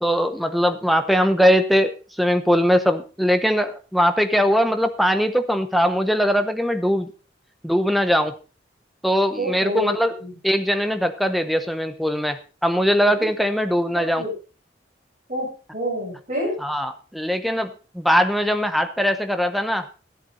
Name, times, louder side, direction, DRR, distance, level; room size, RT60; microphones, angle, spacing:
voice 1, 0.0-7.1 7.6-8.3 9.0-10.2 10.4-14.2 16.6-19.9, equal, ahead, 8 dB, 0.8 m, -21 dB
voice 2, 9.4-9.9 10.2-10.3 14.2-14.3 15.3-16.6, equal, 40° right, -4 dB, 7.4 m, -27 dB
13.5 x 11.0 x 3.9 m, 0.35 s
head